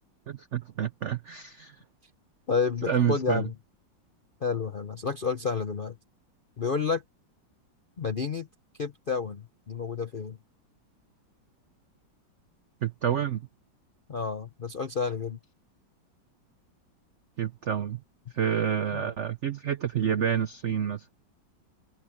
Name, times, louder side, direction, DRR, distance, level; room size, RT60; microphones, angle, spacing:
voice 1, 0.3-1.8 2.9-3.5 12.8-13.5 17.4-18.0 18.3-21.1, right 8 dB, 75° right, 0.6 m, -28 dB
voice 2, 2.5-3.5 4.4-6.0 6.6-7.0 8.0-8.5 8.8-10.4 14.1-15.4 18.9-19.1, left 5 dB, 55° left, 0.5 m, -30 dB
omnidirectional pair, 2.1 m